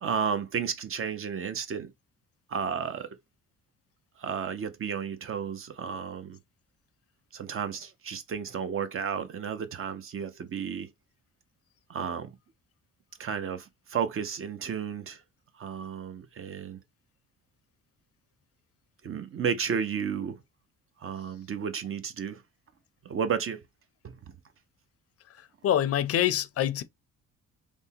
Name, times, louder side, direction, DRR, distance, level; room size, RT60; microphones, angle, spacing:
voice 1, 0.0-1.9 2.5-3.2 4.2-6.4 7.3-10.9 11.9-12.3 13.2-15.2 15.6-16.8 19.0-20.4 21.0-22.4 23.0-23.6 24.0-24.2, right 7 dB, 45° right, 0.7 m, -32 dB
voice 2, 25.6-26.8, left 11 dB, 50° left, 0.5 m, -25 dB
3.4 x 2.1 x 2.7 m
cardioid pair, 90°, 30 cm